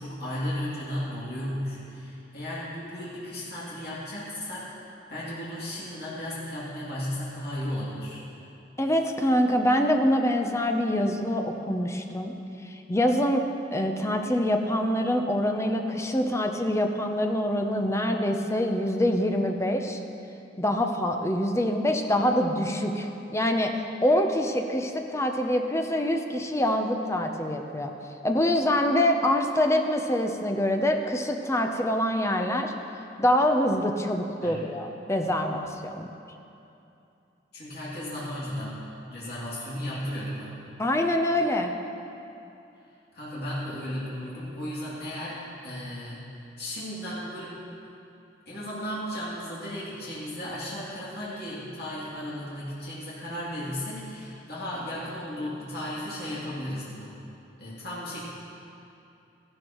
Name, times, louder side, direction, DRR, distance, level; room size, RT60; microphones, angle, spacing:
voice 1, 0.0-4.8 5.1-8.2 34.4-34.7 37.5-38.7 39.1-40.6 43.1-46.3 46.6-47.6 48.5-57.1 57.6-58.2, equal, 60° left, -9 dB, 2.6 m, -35 dB
voice 2, 8.8-12.4 12.6-20.0 20.6-27.9 28.2-32.7 33.2-36.1 40.8-41.7, left 1 dB, 15° left, 4 dB, 0.6 m, -25 dB
14.0 x 11.5 x 3.0 m, 2.8 s
head